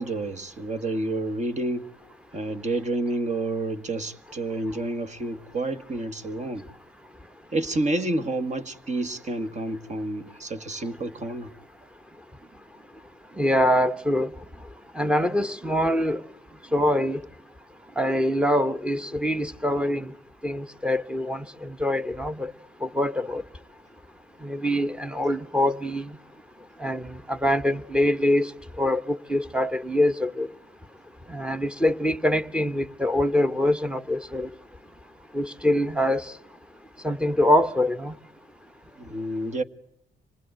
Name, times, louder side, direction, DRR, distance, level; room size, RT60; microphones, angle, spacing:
voice 1, 0.0-1.9 2.3-6.7 7.5-11.5 39.0-39.6, right 2 dB, 35° right, 1.8 m, -29 dB
voice 2, 13.4-14.3 14.9-16.2 16.7-17.2 18.0-20.1 20.4-22.5 22.8-23.4 24.4-26.2 26.8-28.5 28.8-30.5 31.3-34.5 35.3-36.3 37.0-38.1, left 1 dB, 5° right, 1.2 m, -24 dB
26.0 x 19.5 x 9.1 m
cardioid pair, 90°, 20 cm